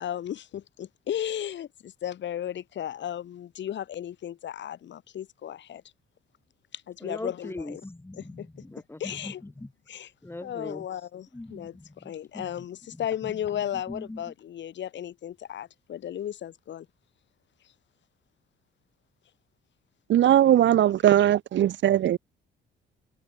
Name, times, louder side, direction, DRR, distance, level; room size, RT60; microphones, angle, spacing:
voice 1, 0.0-5.8 6.7-7.8 8.2-8.5 9.0-9.4 9.9-10.1 10.4-16.9 20.5-20.6, left 10 dB, 65° left, 2.9 m, -35 dB
voice 2, 7.0-9.7 10.2-10.9 11.3-14.3, left 2 dB, 10° left, 3.7 m, -41 dB
voice 3, 20.1-22.2, right 12 dB, 70° right, 1.7 m, -20 dB
cardioid pair, 90°, 20 cm